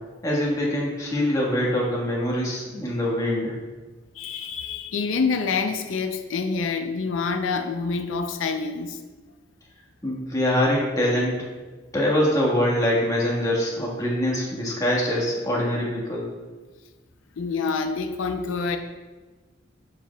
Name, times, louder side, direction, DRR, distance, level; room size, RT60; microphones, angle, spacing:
voice 1, 0.2-3.6 10.0-11.3 11.9-16.3, left 1 dB, 20° left, -4 dB, 1.4 m, -24 dB
voice 2, 4.2-9.0 17.4-18.8, left 4 dB, 90° left, 7 dB, 0.4 m, -27 dB
7.4 x 6.7 x 2.2 m, 1.3 s
head